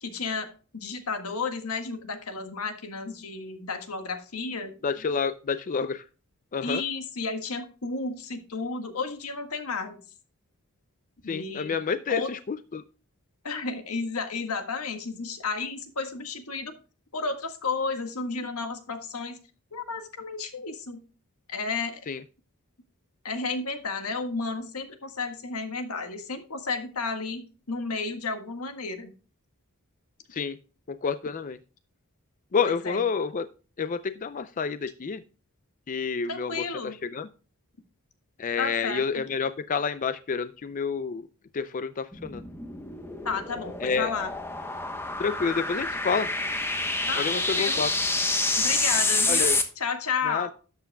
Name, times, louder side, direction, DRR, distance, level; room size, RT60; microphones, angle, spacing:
voice 1, 0.0-0.5 0.7-4.7 6.6-10.0 11.2-11.8 12.1-12.3 13.4-16.7 17.1-19.4 19.7-21.0 21.5-22.0 23.2-29.1 32.6-33.0 36.3-37.0 38.6-39.2 43.3-44.3 47.1-47.8 48.6-50.5, left 4 dB, 80° left, 7 dB, 1.6 m, -32 dB
voice 2, 4.8-6.0 6.5-6.8 11.3-12.8 22.1-22.2 30.3-30.6 30.9-31.6 32.5-33.5 33.8-35.2 35.9-37.3 38.4-41.3 41.5-42.4 43.8-44.1 45.2-46.3 47.2-47.9 49.3-49.6 50.3-50.5, left 5 dB, 35° left, 12 dB, 0.4 m, -29 dB
sound 1, 42.1-49.6, left 2 dB, 10° left, 1.0 m, -28 dB
12.5 x 8.1 x 2.2 m, 0.36 s
head